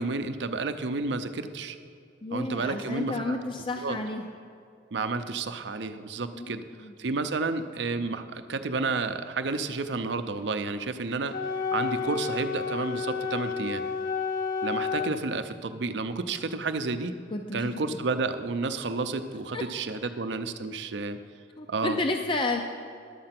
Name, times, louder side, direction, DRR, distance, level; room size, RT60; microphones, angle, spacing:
voice 1, 0.0-1.8 2.3-3.4 3.8-4.0 4.9-6.6 7.0-11.3 11.7-13.8 14.6-17.1 17.5-21.2 21.7-22.0, right 3 dB, 65° right, 9 dB, 0.6 m, -31 dB
voice 2, 2.2-4.3 6.3-6.9 17.3-17.8 19.5-19.6 21.6-22.6, left 2 dB, 30° left, 4 dB, 0.5 m, -31 dB
Wind instrument woodwind instrument, 11.3-15.2, left 5 dB, 50° left, 1.0 m, -30 dB
11.5 x 7.7 x 5.9 m, 2.4 s
head